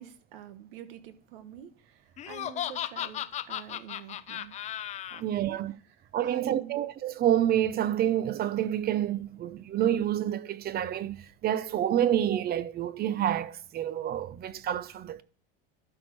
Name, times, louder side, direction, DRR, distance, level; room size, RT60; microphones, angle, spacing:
voice 1, 0.0-4.5 5.1-5.6 6.0-6.8, right 10 dB, 75° right, 1.3 m, -47 dB
Laughter, 2.2-5.2, left 11 dB, 25° left, 0.4 m, -35 dB
voice 2, 5.2-5.7 6.1-15.2, right 11 dB, 35° right, 0.7 m, -28 dB
12.0 x 4.5 x 4.7 m
supercardioid pair, 110°, 29 cm